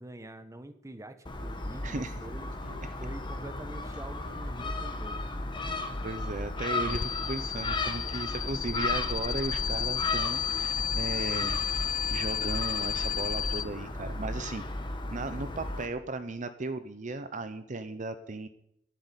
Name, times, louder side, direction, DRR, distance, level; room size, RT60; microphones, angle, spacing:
voice 1, 0.0-2.6 3.0-5.2, right 1 dB, 15° right, 10 dB, 1.0 m, -45 dB
Gull seagull, 1.3-15.9, left 2 dB, 25° left, 1.4 m, -35 dB
sound 1, 1.3-1.9 2.5-3.2 4.0-4.8 5.6-6.3 7.0-7.6 8.3-8.9 9.6-10.2 10.9-11.5 12.3-13.0 13.6-14.3, right 1 dB, 65° right, 5.9 m, -54 dB
voice 2, 1.8-2.1 2.8-2.9 4.6-4.7 6.0-11.6 12.1-14.6 15.1-18.5, right 3 dB, 45° right, 10 dB, 0.7 m, -36 dB
sound 2, 6.9-13.6, left 9 dB, 45° left, 0.4 m, -32 dB
11.0 x 8.0 x 9.8 m, 0.76 s
head